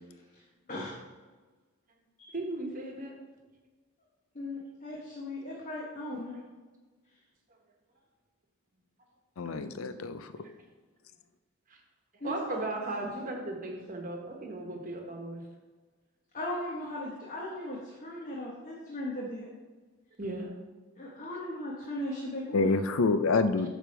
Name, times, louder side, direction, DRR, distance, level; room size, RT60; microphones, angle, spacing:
voice 1, 2.3-3.1 9.4-9.5 11.7-11.8 12.2-15.4 20.2-20.5, right 2 dB, 40° right, 1 dB, 1.2 m, -36 dB
voice 2, 4.3-6.4 12.2-12.3 16.3-19.5 21.0-22.7, left 1 dB, 40° left, -4 dB, 1.2 m, -37 dB
voice 3, 9.4-10.3 22.5-23.7, left 3 dB, 80° left, 11 dB, 0.5 m, -27 dB
8.9 x 3.4 x 6.1 m, 1.3 s
head